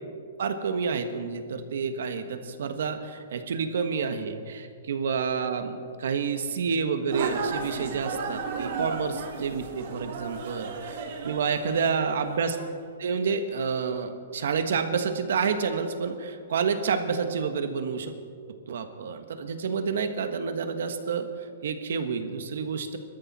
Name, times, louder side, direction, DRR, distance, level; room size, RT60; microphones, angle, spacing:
voice 1, 0.4-11.0 11.2-12.6 13.0-18.1 18.7-21.3 21.6-23.0, right 5 dB, 60° right, 7 dB, 1.5 m, -29 dB
sound 1, 7.1-12.6, right 4 dB, 40° right, 2.2 m, -34 dB
25.0 x 13.0 x 4.3 m, 2.2 s
hypercardioid pair, 175°, 0 cm